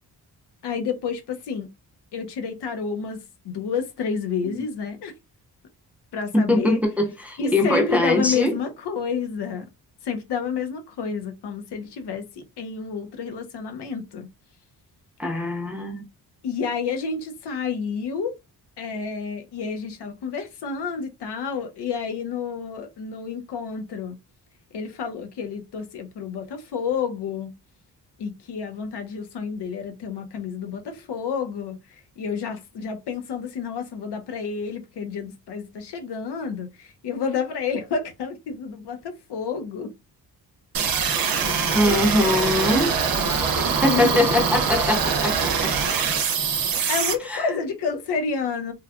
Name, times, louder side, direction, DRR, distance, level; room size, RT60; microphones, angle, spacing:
voice 1, 0.6-1.7 2.1-3.2 3.4-5.1 6.1-6.8 7.4-9.7 10.0-14.3 16.4-18.4 18.8-24.2 24.7-27.5 28.2-31.8 32.2-39.9 41.4-42.8 43.3-44.4 46.9-48.7, left 6 dB, 85° left, 0.8 m, -30 dB
voice 2, 6.3-8.6 15.2-16.1 41.7-42.9 43.7-45.7 47.2-47.5, left 1 dB, 5° right, 0.4 m, -22 dB
sound 1, 40.7-47.1, right 6 dB, 60° right, 0.7 m, -23 dB
3.1 x 2.2 x 2.3 m
wide cardioid pair, 150°, 39 cm